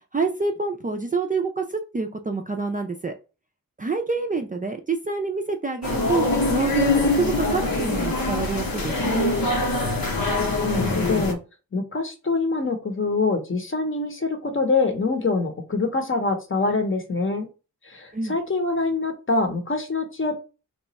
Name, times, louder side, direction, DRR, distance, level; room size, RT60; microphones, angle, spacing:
voice 1, 0.1-3.1 3.8-9.3 18.1-18.4, right 4 dB, 25° right, 3 dB, 0.4 m, -27 dB
sound 1, 5.8-11.3, left 2 dB, 80° left, 0.9 m, -23 dB
voice 2, 10.6-11.4 11.7-17.5 17.8-20.4, left 3 dB, 35° left, 6 dB, 0.8 m, -25 dB
2.9 x 2.3 x 4.0 m, 0.32 s
wide cardioid pair, 100°, 34 cm